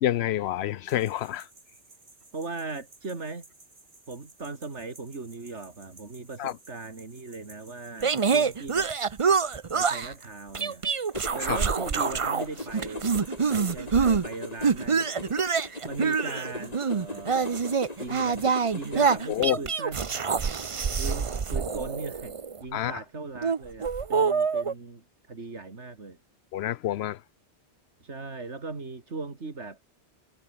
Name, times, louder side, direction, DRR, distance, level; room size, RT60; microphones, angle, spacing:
voice 1, 0.0-1.5 6.4-6.5 11.5-11.6 19.3-19.6 22.7-23.0 26.5-27.2, left 12 dB, 70° left, 0.8 m, -27 dB
sound 1, 0.8-19.8, right 3 dB, 70° right, 3.7 m, -56 dB
voice 2, 2.3-3.5 4.1-8.9 9.7-10.8 11.3-13.1 13.5-15.1 15.8-20.3 21.0-26.2 28.0-29.8, right 3 dB, 90° right, 3.1 m, -39 dB
sound 2, 8.0-10.1 10.5-12.4 12.7-14.2 14.6-22.6 23.3-24.7, right 5 dB, 35° right, 0.7 m, -26 dB
sound 3, 11.1-19.4, left 2 dB, 35° left, 3.3 m, -39 dB
omnidirectional pair, 1.1 m